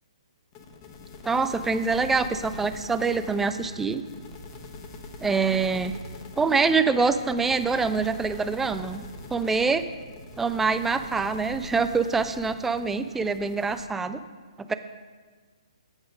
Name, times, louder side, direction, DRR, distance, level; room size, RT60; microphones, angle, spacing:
sound 1, 0.5-13.9, left 3 dB, 30° left, 0.9 m, -44 dB
voice 1, 1.2-4.0 5.2-5.9 6.4-9.1 9.3-9.8 10.4-14.2 14.6-14.7, right 4 dB, 5° right, 10 dB, 0.3 m, -25 dB
sound 2, 1.6-12.5, right 1 dB, 50° right, 1.0 m, -49 dB
8.9 x 5.1 x 5.1 m, 1.5 s
figure-of-eight pair, 130°, 3 cm